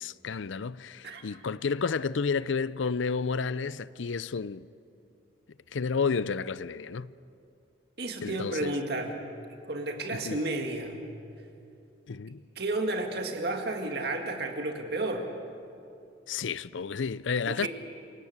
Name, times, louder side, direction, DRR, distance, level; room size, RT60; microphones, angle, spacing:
voice 1, 0.0-4.7 5.7-7.1 8.2-8.8 10.1-10.4 12.1-12.4 16.3-17.7, left 5 dB, 75° left, 0.5 m, -31 dB
voice 2, 8.0-9.1 9.7-11.0 12.6-15.2 17.4-17.7, right 2 dB, 55° right, 2.0 m, -32 dB
27.5 x 18.0 x 8.1 m
head